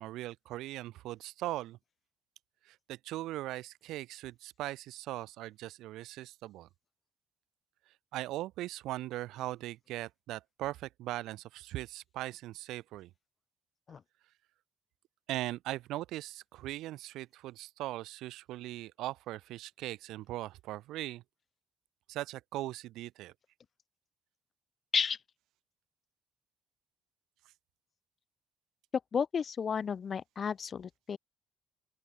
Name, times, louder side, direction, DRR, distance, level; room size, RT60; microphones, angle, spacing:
voice 1, 0.0-1.8 2.6-6.7 8.1-13.1 15.3-21.2 22.1-23.3, right 16 dB, 85° right, 3.3 m, -39 dB
voice 2, 29.1-31.2, left 6 dB, 40° left, 5.6 m, -32 dB
open air
cardioid pair, 110°, 0 cm